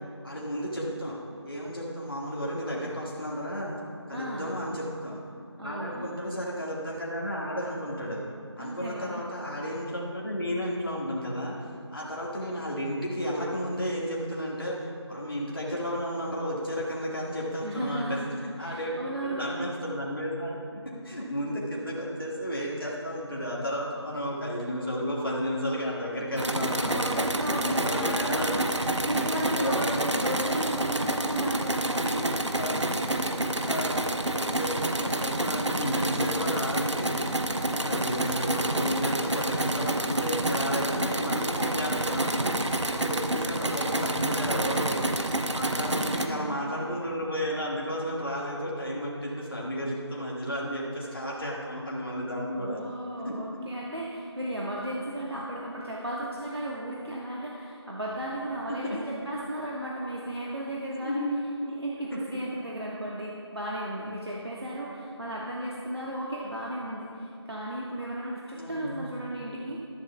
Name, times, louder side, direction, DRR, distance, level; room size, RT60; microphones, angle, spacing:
voice 1, 0.2-3.8 4.1-5.2 5.6-8.2 8.6-11.5 11.9-27.0 27.5-28.6 29.2-30.0 31.4-31.5 32.0-32.3 32.5-33.0 33.3-37.1 37.5-42.5 42.9-52.8 53.2-53.6 54.5-54.6 58.7-59.0 61.0-61.5 62.1-62.2 68.5-69.0, equal, 50° left, -5 dB, 1.8 m, -33 dB
voice 2, 4.1-4.5 5.6-6.1 8.6-9.2 17.6-18.3 18.6-19.5 26.7-28.7 29.0-32.4 45.9-46.6 52.5-61.3 61.6-69.8, right 1 dB, 60° right, -4 dB, 1.4 m, -35 dB
sound 1, 26.4-46.3, right 1 dB, 80° right, 0.8 m, -28 dB
13.0 x 12.5 x 2.3 m, 2.7 s
figure-of-eight pair, 180°, 15 cm